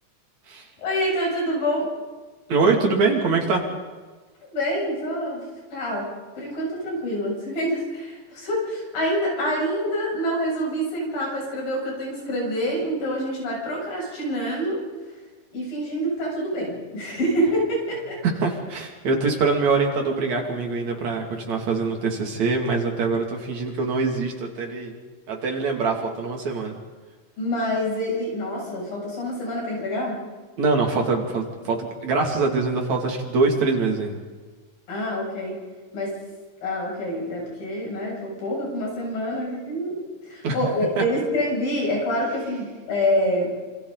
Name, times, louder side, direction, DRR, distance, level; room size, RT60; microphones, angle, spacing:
voice 1, 0.8-1.9 4.5-5.4 5.7-6.1 6.4-14.8 15.5-18.2 27.4-30.2 34.9-35.6 35.9-36.2 36.6-43.5, equal, 75° left, -3 dB, 9.2 m, -26 dB
voice 2, 2.5-3.6 18.2-24.9 25.3-26.8 30.6-34.2 40.4-40.6 41.0-41.1, right 4 dB, 55° right, 1 dB, 3.8 m, -23 dB
27.5 x 26.5 x 4.1 m, 1.4 s
omnidirectional pair, 4.1 m